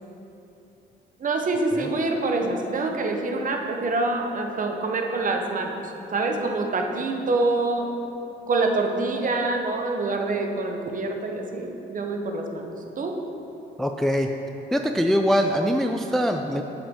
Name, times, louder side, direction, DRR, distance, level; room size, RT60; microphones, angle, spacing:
voice 1, 1.2-7.9 8.5-13.2, right 2 dB, 40° right, 3 dB, 0.8 m, -26 dB
voice 2, 13.8-14.3 14.7-16.6, equal, ahead, 4 dB, 0.3 m, -23 dB
8.3 x 5.8 x 3.6 m, 3.0 s
cardioid pair, 90°, 20 cm